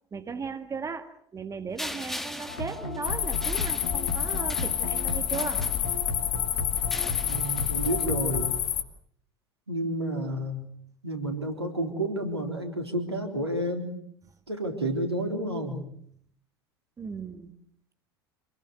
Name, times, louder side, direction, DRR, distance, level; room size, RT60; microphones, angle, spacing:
voice 1, 0.1-5.7 17.0-17.5, right 5 dB, 25° right, 9 dB, 2.0 m, -37 dB
sound 1, 1.8-6.2 6.8-8.0, left 1 dB, ahead, 2.6 m, -41 dB
sound 2, 2.5-8.6, left 3 dB, 70° left, 3.2 m, -36 dB
Night time crickets, 3.0-8.8, left 9 dB, 40° left, 2.4 m, -29 dB
voice 2, 7.3-8.5 9.7-10.6 11.0-13.9 14.5-15.8, right 1 dB, 85° right, 5 dB, 3.7 m, -30 dB
28.0 x 21.0 x 7.9 m, 0.66 s
figure-of-eight pair, 70°, 13 cm